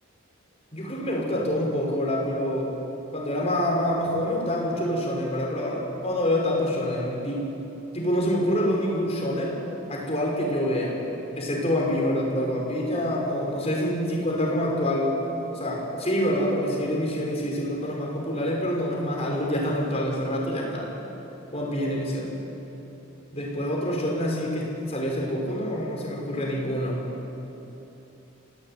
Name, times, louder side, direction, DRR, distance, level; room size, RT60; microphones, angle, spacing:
voice 1, 0.7-2.7 3.1-7.4 7.9-9.6 9.9-10.9 11.3-15.1 15.5-20.9 21.5-22.3 23.3-27.0, equal, 30° left, -2 dB, 6.2 m, -26 dB
28.0 x 18.0 x 9.5 m, 3.0 s
head